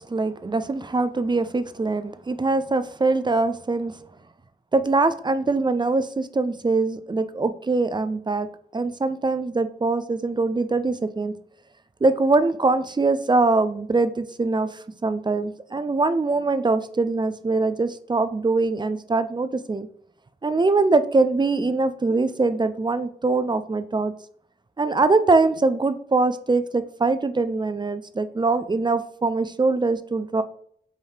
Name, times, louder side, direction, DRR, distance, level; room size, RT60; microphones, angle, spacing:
voice 1, 0.0-3.9 4.7-8.5 8.7-11.3 12.0-14.7 15.0-19.9 20.4-24.1 24.8-30.4, right 3 dB, 25° right, 12 dB, 0.3 m, -23 dB
4.8 x 2.7 x 3.3 m, 0.63 s
cardioid pair, 60°, 18 cm